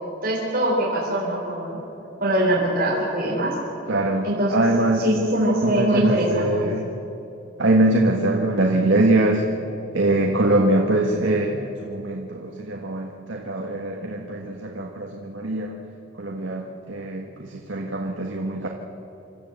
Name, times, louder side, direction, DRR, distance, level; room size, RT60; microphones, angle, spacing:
voice 1, 0.2-1.8 2.2-3.5 4.2-4.6 5.0-6.7, right 1 dB, 50° right, -5 dB, 3.8 m, -22 dB
voice 2, 3.9-5.1 5.6-6.9 7.6-9.5 9.9-15.8 16.2-18.7, right 2 dB, 85° right, 1 dB, 1.6 m, -23 dB
27.0 x 13.0 x 8.0 m, 2.9 s
head